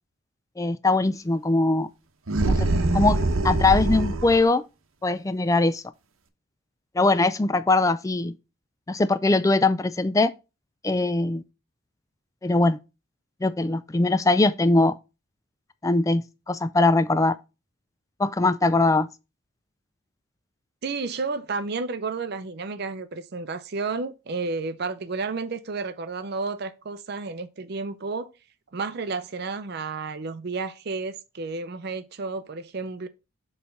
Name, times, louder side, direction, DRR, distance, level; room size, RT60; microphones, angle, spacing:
voice 1, 0.6-1.9 2.4-2.7 2.9-3.2 3.4-4.6 5.0-5.8 7.0-8.3 8.9-10.3 10.8-11.4 12.4-12.8 13.4-15.0 15.8-17.4 18.2-19.1, left 2 dB, 15° left, 0.3 m, -21 dB
sound 1, 2.3-4.5, right 2 dB, 80° right, 0.9 m, -23 dB
voice 2, 20.8-28.3 28.7-33.1, right 4 dB, 50° right, 0.5 m, -31 dB
6.8 x 3.2 x 5.6 m
head